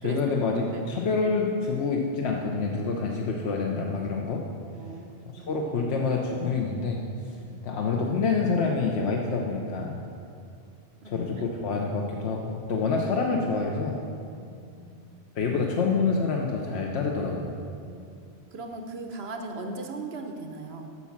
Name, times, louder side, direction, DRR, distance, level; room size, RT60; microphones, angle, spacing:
voice 1, 0.0-4.4 5.3-7.0 7.6-10.0 11.0-14.0 15.3-17.5, left 4 dB, 85° left, 0 dB, 1.1 m, -27 dB
voice 2, 4.7-5.1 5.3-5.6 7.4-7.6 11.0-11.1 14.4-15.0 17.8-18.1 18.5-20.9, right 3 dB, 75° right, 4 dB, 1.1 m, -39 dB
8.3 x 6.0 x 7.2 m, 2.5 s
omnidirectional pair, 1.1 m